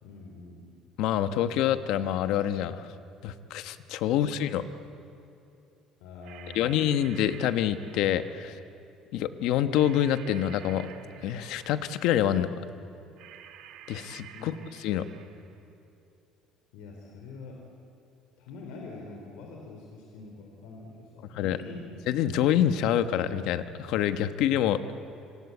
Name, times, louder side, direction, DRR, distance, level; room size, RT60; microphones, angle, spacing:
voice 1, 0.0-0.7 6.0-6.8 14.3-14.5 16.7-17.7 18.4-21.9, left 3 dB, 85° left, 0 dB, 4.0 m, -45 dB
voice 2, 1.0-2.9 3.2-4.7 6.5-8.6 9.1-10.9 11.2-12.5 13.9-14.5 14.8-15.1 21.3-21.6 22.1-24.9, left 10 dB, 65° left, 10 dB, 1.2 m, -26 dB
sound 1, 6.2-8.7 9.7-12.1 13.2-15.6, right 9 dB, 60° right, 2.0 m, -50 dB
27.0 x 26.0 x 8.6 m, 2.7 s
cardioid pair, 180°, 0 cm